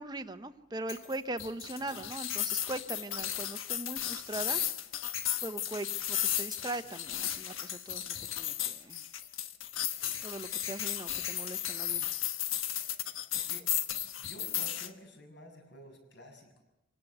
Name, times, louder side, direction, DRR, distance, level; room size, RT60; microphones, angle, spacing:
voice 1, 0.0-4.6 5.4-9.0 10.2-12.1, right 2 dB, 20° right, 10 dB, 0.9 m, -40 dB
sound 1, 0.9-14.9, left 11 dB, 90° left, 1.4 m, -35 dB
voice 2, 13.3-13.6 14.2-16.6, equal, 65° left, 4 dB, 6.7 m, -52 dB
26.0 x 18.0 x 8.1 m, 0.97 s
head